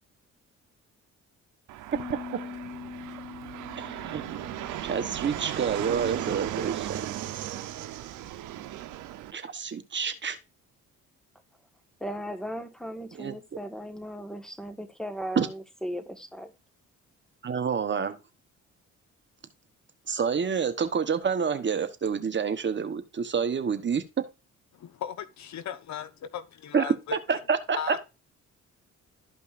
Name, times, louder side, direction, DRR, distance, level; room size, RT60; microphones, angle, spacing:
Fixed-wing aircraft airplane, 1.7-9.3, right 13 dB, 85° right, 0.8 m, -36 dB
Piano, 1.9-7.5, left 6 dB, 40° left, 3.0 m, -45 dB
voice 1, 3.8-4.3 4.8-7.1 9.3-10.4 13.1-13.3 15.4-15.5 17.4-18.2 20.1-24.0 26.7-28.0, right 6 dB, 40° right, 1.1 m, -28 dB
voice 2, 12.0-16.5, equal, ahead, 1.5 m, -37 dB
voice 3, 24.7-27.2 27.8-28.0, left 9 dB, 65° left, 1.0 m, -37 dB
12.5 x 5.3 x 2.5 m
cardioid pair, 90°, 30 cm